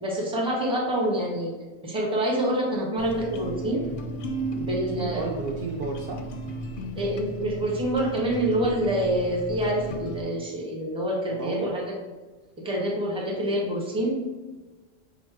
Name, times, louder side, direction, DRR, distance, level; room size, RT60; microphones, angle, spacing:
voice 1, 0.0-1.5 1.8-3.9 4.5-5.3 7.0-11.8 12.6-14.2, right 1 dB, 5° right, -2 dB, 0.7 m, -26 dB
sound 1, 3.0-10.2, right 1 dB, 60° left, 0.6 m, -35 dB
voice 2, 4.6-6.2 11.3-11.8, right 3 dB, 65° right, 1 dB, 0.7 m, -33 dB
4.8 x 2.0 x 4.6 m, 1.3 s
omnidirectional pair, 1.2 m